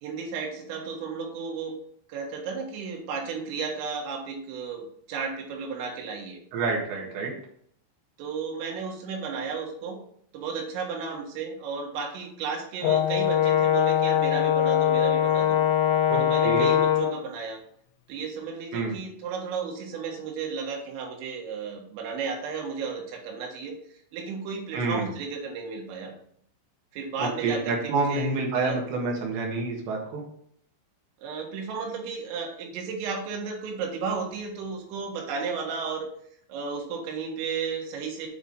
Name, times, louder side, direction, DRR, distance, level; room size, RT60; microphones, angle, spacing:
voice 1, 0.0-1.7 2.1-6.4 8.2-10.0 10.3-15.6 16.2-17.6 18.1-23.7 24.1-26.1 26.9-28.8 31.2-36.1 36.5-38.3, right 5 dB, 85° right, 1 dB, 4.1 m, -33 dB
voice 2, 6.5-7.3 16.1-16.7 18.7-18.9 24.7-25.1 27.2-30.2, right 3 dB, 70° right, -1 dB, 3.6 m, -28 dB
Brass instrument, 12.8-17.2, left 10 dB, 80° left, 2.9 m, -22 dB
9.1 x 4.1 x 5.2 m, 0.65 s
omnidirectional pair, 5.7 m